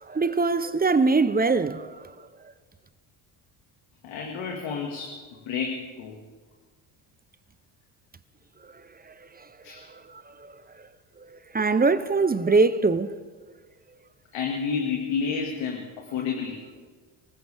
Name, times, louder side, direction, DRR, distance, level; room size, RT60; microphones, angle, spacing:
voice 1, 0.0-2.5 8.6-10.9 11.2-13.2, right 3 dB, 20° right, 0.8 m, -25 dB
voice 2, 4.0-6.1 9.6-9.9 14.3-16.6, left 6 dB, 70° left, 2.2 m, -30 dB
25.5 x 14.5 x 3.6 m
supercardioid pair, 75°, 48 cm